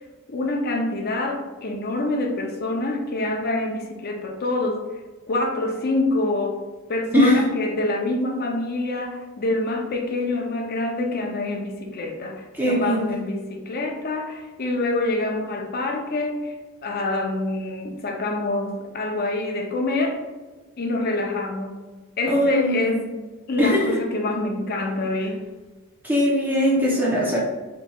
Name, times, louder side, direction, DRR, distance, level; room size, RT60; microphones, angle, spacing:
voice 1, 0.3-4.9 5.3-6.6 6.9-16.5 16.8-20.2 20.8-21.8 22.2-23.1 23.5-25.5, left 2 dB, 45° left, 2 dB, 0.6 m, -26 dB
voice 2, 12.5-13.2 22.3-22.9 23.6-24.0 26.0-27.4, equal, 10° right, -5 dB, 0.7 m, -20 dB
4.3 x 3.1 x 2.3 m, 1.3 s
head